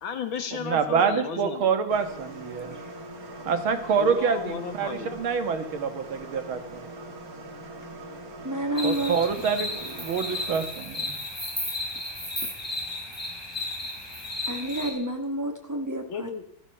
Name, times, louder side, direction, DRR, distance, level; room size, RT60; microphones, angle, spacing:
voice 1, 0.0-1.7 4.0-5.2 15.8-16.5, left 6 dB, 75° left, 8 dB, 2.3 m, -34 dB
voice 2, 0.6-2.7 3.5-6.8 8.8-11.2, right 6 dB, 85° right, 8 dB, 2.3 m, -26 dB
sound 1, 1.9-10.7, right 1 dB, 45° right, 2.1 m, -42 dB
voice 3, 8.4-9.2 12.4-12.5 14.5-16.3, right 1 dB, 10° right, 3 dB, 1.7 m, -30 dB
sound 2, 8.8-14.9, left 2 dB, 10° left, 3.9 m, -33 dB
15.5 x 13.0 x 5.7 m, 0.69 s
omnidirectional pair, 2.2 m